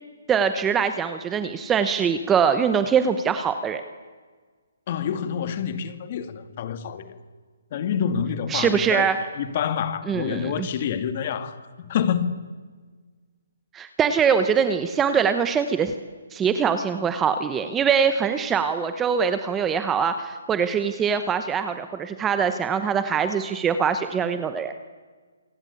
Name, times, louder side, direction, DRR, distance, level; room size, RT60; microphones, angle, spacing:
voice 1, 0.3-3.8 8.5-9.2 10.1-10.7 13.7-16.0 16.3-24.8, right 7 dB, 10° right, 0.9 m, -23 dB
voice 2, 4.9-7.2 7.7-12.3, left 8 dB, 30° left, 2.2 m, -27 dB
28.0 x 25.0 x 8.5 m
hypercardioid pair, 175°, 0 cm